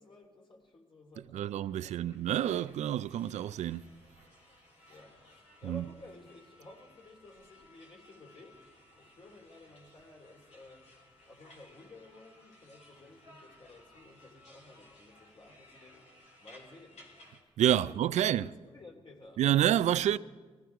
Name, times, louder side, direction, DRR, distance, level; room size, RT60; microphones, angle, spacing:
voice 1, 0.0-2.2 4.9-11.0 11.2-16.0 16.4-17.0 17.7-19.4, left 2 dB, 45° left, 3.2 m, -54 dB
voice 2, 1.3-3.9 5.6-5.8 17.6-18.5 19.4-20.2, right 11 dB, 85° right, 0.4 m, -28 dB
sound 1, 1.6-17.4, left 1 dB, 80° left, 3.0 m, -59 dB
19.5 x 14.5 x 4.6 m
cardioid pair, 70°, 12 cm